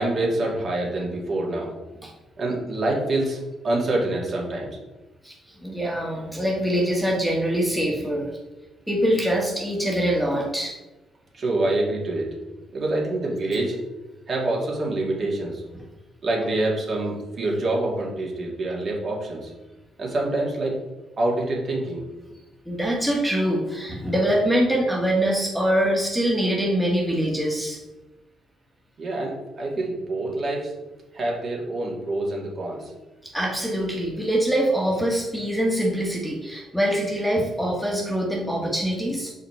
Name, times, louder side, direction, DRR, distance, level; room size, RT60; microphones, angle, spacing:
voice 1, 0.0-1.7 2.4-4.7 11.3-12.3 12.7-13.8 14.3-15.6 16.2-19.5 20.0-20.8 21.2-22.0 29.0-30.7 31.1-32.9, right 2 dB, 50° right, -2 dB, 2.2 m, -26 dB
voice 2, 5.6-8.3 8.9-10.7 22.6-27.8 33.2-39.3, equal, ahead, -3 dB, 1.5 m, -24 dB
6.3 x 4.9 x 4.4 m, 1.1 s
cardioid pair, 90°, 0 cm